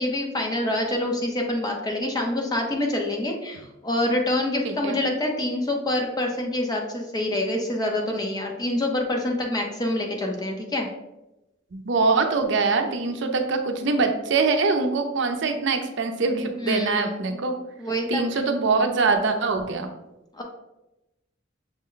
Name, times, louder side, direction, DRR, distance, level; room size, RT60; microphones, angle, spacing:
voice 1, 0.0-10.9 16.6-17.4 17.8-18.2 20.3-20.4, left 1 dB, 20° left, 1 dB, 0.7 m, -26 dB
voice 2, 4.6-5.0 11.7-17.6 18.1-19.9, right 4 dB, 65° right, 5 dB, 0.5 m, -23 dB
6.2 x 2.1 x 3.8 m, 0.95 s
head